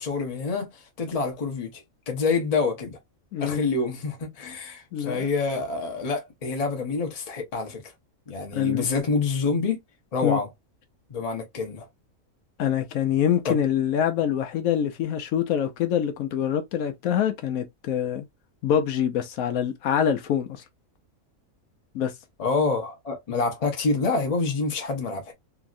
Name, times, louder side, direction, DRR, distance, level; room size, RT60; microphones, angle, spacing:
voice 1, 0.0-3.0 3.4-7.8 8.3-9.8 10.1-10.5 11.1-11.9 13.4-13.6 22.4-25.3, left 4 dB, 35° left, 0.7 m, -27 dB
voice 2, 3.3-3.7 4.9-5.2 8.5-8.9 10.2-10.4 12.6-18.3 18.6-20.5 21.9-22.1, left 9 dB, 75° left, 1.0 m, -25 dB
3.0 x 2.7 x 2.4 m
omnidirectional pair, 1.5 m